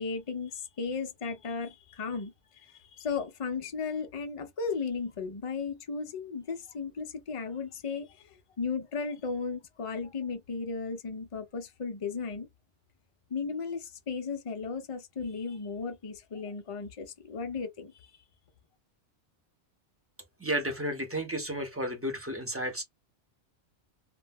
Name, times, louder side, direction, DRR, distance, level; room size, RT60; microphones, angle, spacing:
voice 1, 0.0-12.5 13.3-18.1, left 5 dB, 45° left, 0.4 m, -35 dB
voice 2, 20.4-22.8, right 1 dB, 15° right, 0.5 m, -32 dB
2.3 x 2.2 x 3.4 m
omnidirectional pair, 1.2 m